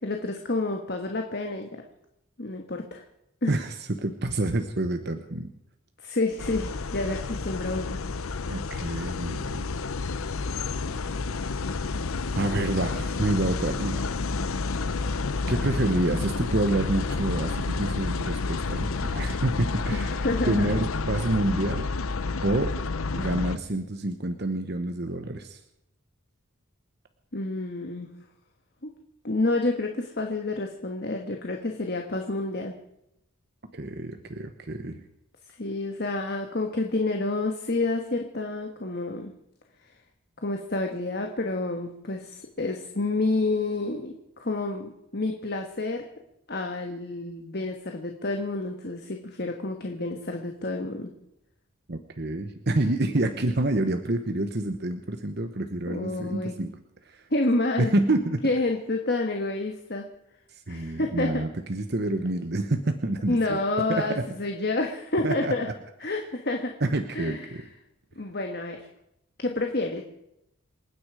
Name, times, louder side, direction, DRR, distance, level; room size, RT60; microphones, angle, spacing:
voice 1, 0.0-1.7 2.4-3.0 3.4-3.5 6.0-8.0 19.9-20.7 27.3-28.1 28.8-28.9 29.2-32.7 35.6-39.3 40.4-46.0 46.5-51.1 55.9-56.5 57.3-57.9 58.4-60.1 60.7-61.4 63.3-65.7 66.0-66.7 67.1-67.6 68.2-68.9 69.4-70.0, left 2 dB, 50° left, 3 dB, 1.4 m, -29 dB
voice 2, 3.5-5.5 8.5-9.7 11.5-11.6 12.3-14.0 15.5-20.1 20.4-21.9 22.4-22.7 23.1-25.6 33.7-35.1 51.9-56.7 57.1-57.2 57.8-58.4 60.7-63.6 63.9-64.2 65.2-65.5 66.0-66.2 66.8-67.6, right 2 dB, 50° right, 7 dB, 1.0 m, -28 dB
sound 1, 6.4-23.6, left 4 dB, 80° left, 0.7 m, -30 dB
28.0 x 9.6 x 4.9 m, 0.81 s
head